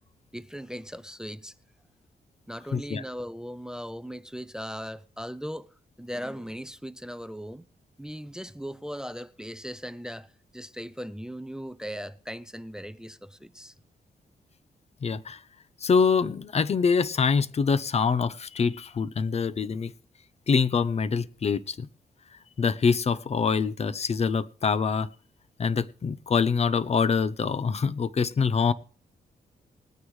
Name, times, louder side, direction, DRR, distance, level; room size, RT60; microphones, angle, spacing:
voice 1, 0.3-1.5 2.5-7.7 8.0-13.7, equal, 5° right, 0.5 m, -38 dB
voice 2, 2.7-3.0 15.0-15.4 15.8-19.9 20.5-21.9 22.6-25.1 25.6-28.7, left 5 dB, 40° left, 0.7 m, -25 dB
20.0 x 9.6 x 3.2 m
cardioid pair, 110°, 16 cm